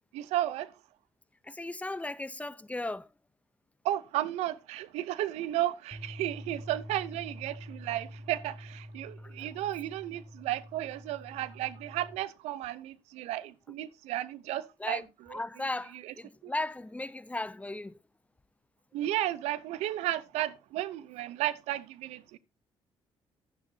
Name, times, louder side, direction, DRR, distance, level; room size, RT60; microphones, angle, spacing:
voice 1, 0.1-0.7 3.8-15.0 15.3-15.4 15.9-16.1 16.4-16.5 18.9-22.4, right 14 dB, 85° right, 0.6 m, -33 dB
voice 2, 1.4-3.1 9.2-9.5 14.8-15.0 15.3-18.0, left 2 dB, 10° left, 0.6 m, -36 dB
sound 1, 5.9-12.2, equal, 5° right, 3.3 m, -46 dB
10.5 x 9.7 x 2.7 m
supercardioid pair, 55°, 11 cm